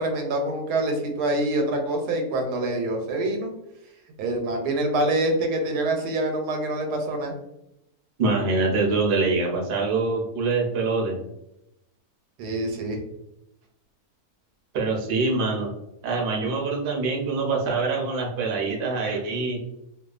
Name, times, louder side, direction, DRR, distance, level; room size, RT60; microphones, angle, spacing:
voice 1, 0.0-3.5 4.2-7.4 12.4-13.0, right 1 dB, 90° right, 3 dB, 1.2 m, -25 dB
voice 2, 8.2-11.2 14.7-15.7 16.0-19.6, right 3 dB, 55° right, -1 dB, 0.6 m, -24 dB
2.7 x 2.3 x 2.3 m, 0.84 s
omnidirectional pair, 1.6 m